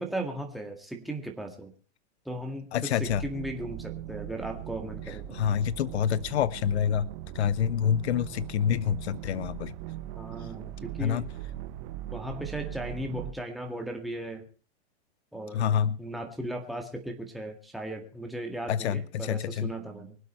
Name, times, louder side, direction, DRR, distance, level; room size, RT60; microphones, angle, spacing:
voice 1, 0.0-1.7 2.3-5.4 10.2-11.3 12.1-14.5 15.3-20.2, right 1 dB, ahead, 2 dB, 2.0 m, -37 dB
voice 2, 2.7-3.2 5.3-7.1 7.3-9.7 11.0-11.2 15.5-16.0 18.7-19.7, left 9 dB, 85° left, 20 dB, 0.7 m, -27 dB
sound 1, 3.0-13.3, right 13 dB, 40° right, 1.1 m, -40 dB
24.0 x 8.1 x 4.5 m, 0.37 s
hypercardioid pair, 145°, 32 cm